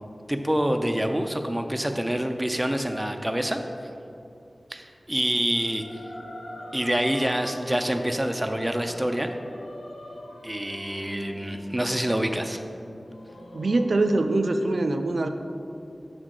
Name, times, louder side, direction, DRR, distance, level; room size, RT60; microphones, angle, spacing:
voice 1, 0.3-3.6 4.7-5.9 6.7-9.3 10.4-12.6, equal, 10° right, 5 dB, 0.4 m, -26 dB
sound 1, 5.5-14.3, left 1 dB, 85° left, 0.7 m, -44 dB
voice 2, 13.5-15.3, right 2 dB, 80° right, 6 dB, 0.3 m, -23 dB
6.6 x 3.7 x 6.3 m, 2.6 s
wide cardioid pair, 75°, 0 cm